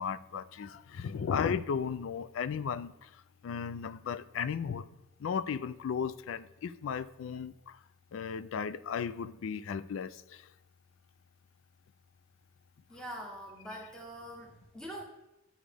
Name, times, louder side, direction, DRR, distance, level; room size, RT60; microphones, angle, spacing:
voice 1, 0.0-4.9 5.2-7.8 8.1-10.5, left 6 dB, 80° left, 0.4 m, -35 dB
voice 2, 12.9-15.0, equal, 5° left, 0.9 m, -44 dB
11.0 x 5.0 x 3.4 m
head